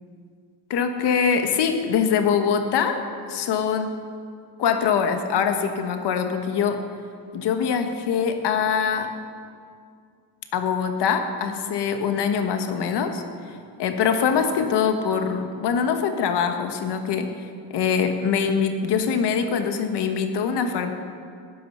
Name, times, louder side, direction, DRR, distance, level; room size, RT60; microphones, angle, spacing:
voice 1, 0.7-3.0 3.3-3.9 4.6-6.8 7.3-9.1 10.5-13.2 13.8-17.3 17.7-20.9, left 6 dB, 60° left, 6 dB, 1.3 m, -23 dB
15.0 x 11.5 x 5.6 m, 2.2 s
cardioid pair, 170°, 46 cm